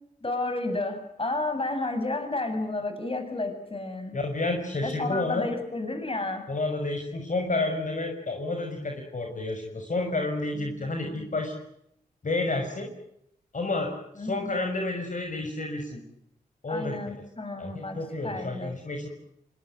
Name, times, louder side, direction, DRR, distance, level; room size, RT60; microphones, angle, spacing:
voice 1, 0.2-4.2 4.8-6.4 14.2-14.5 16.7-18.7, left 2 dB, 35° left, 8 dB, 8.0 m, -31 dB
voice 2, 4.1-5.5 6.5-11.5 12.2-12.9 13.5-13.9 14.2-16.0 16.6-17.0 17.6-19.1, left 2 dB, 50° left, 4 dB, 6.0 m, -30 dB
25.0 x 21.5 x 9.2 m, 0.76 s
cardioid pair, 50°, 16 cm